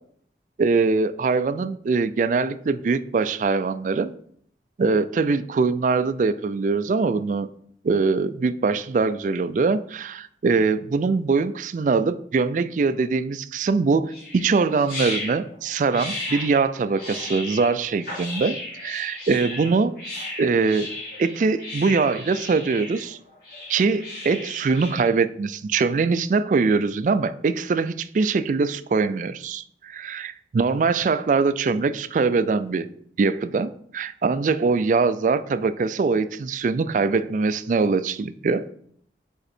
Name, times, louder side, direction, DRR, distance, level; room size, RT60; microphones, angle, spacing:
voice 1, 0.6-4.1 4.8-7.5 7.8-20.0 20.4-20.9 21.2-23.2 23.7-32.9 33.2-38.7, right 4 dB, 45° right, 13 dB, 0.3 m, -22 dB
sound 1, 14.1-25.1, left 2 dB, 55° left, 2.6 m, -35 dB
5.4 x 4.3 x 4.2 m, 0.62 s
head